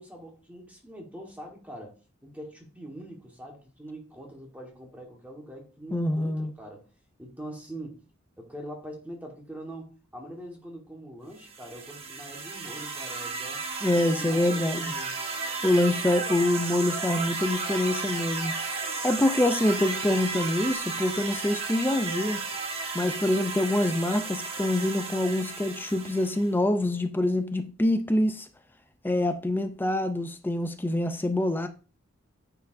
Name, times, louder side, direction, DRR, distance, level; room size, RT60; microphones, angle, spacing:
voice 1, 0.0-1.9 2.2-6.8 7.2-8.0 8.4-13.6 14.1-15.2, right 1 dB, 10° right, 1.3 m, -43 dB
voice 2, 5.9-6.5 13.8-14.9 15.6-18.5 19.0-22.4 22.9-28.5 29.0-31.7, left 1 dB, 10° left, 0.4 m, -25 dB
sound 1, 11.4-26.5, right 4 dB, 30° right, 1.2 m, -34 dB
9.2 x 4.8 x 2.6 m
head